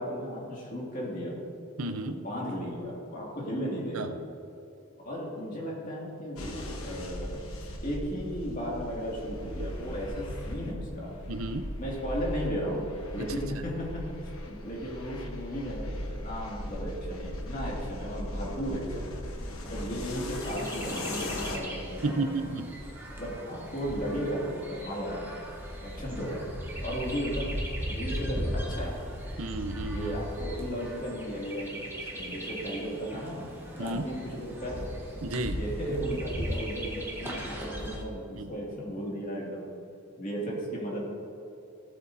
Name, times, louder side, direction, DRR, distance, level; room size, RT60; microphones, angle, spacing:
voice 1, 0.0-1.4 2.0-4.1 5.0-7.4 7.8-11.2 11.8-12.8 13.1-19.2 19.6-22.4 23.1-25.2 25.8-26.5 26.8-29.1 29.9-31.8 32.1-33.5 33.7-34.9 35.6-39.7 40.2-41.0, equal, 40° left, -4 dB, 2.2 m, -35 dB
voice 2, 1.8-2.2 3.9-4.1 9.6-9.7 11.3-11.7 22.0-22.7 29.4-30.2 33.8-34.0 35.2-35.6 38.3-38.5, right 2 dB, 80° right, 8 dB, 0.6 m, -32 dB
sound 1, 6.4-21.6, left 1 dB, 75° left, 1.1 m, -38 dB
Chirp tweet, 20.0-38.0, equal, 10° right, 1.1 m, -38 dB
15.5 x 8.2 x 2.7 m, 2.9 s
head